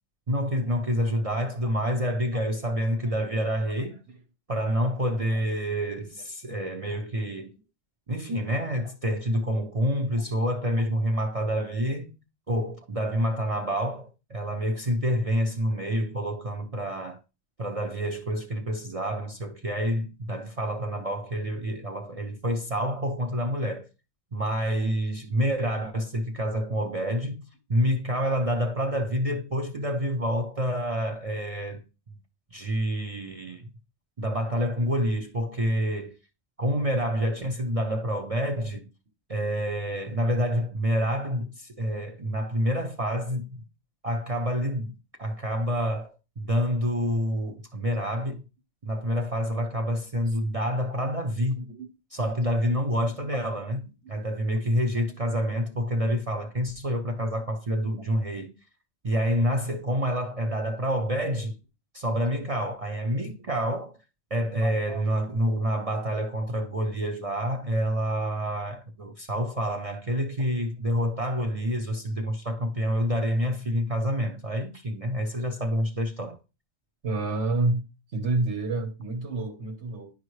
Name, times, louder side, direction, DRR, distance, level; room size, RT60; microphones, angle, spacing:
voice 1, 0.3-4.0 4.5-7.5 8.1-12.1 12.5-17.2 17.6-23.9 24.3-31.8 32.5-33.7 34.2-36.2 36.6-38.9 39.3-43.6 44.0-44.9 45.2-48.4 48.8-51.7 52.1-58.5 59.0-61.6 61.9-64.0 64.3-76.4, equal, 35° right, 0.7 m, -28 dB
voice 2, 64.6-65.0 77.0-77.9 78.1-80.1, right 2 dB, 85° right, 1.6 m, -30 dB
10.5 x 5.3 x 3.2 m
omnidirectional pair, 1.1 m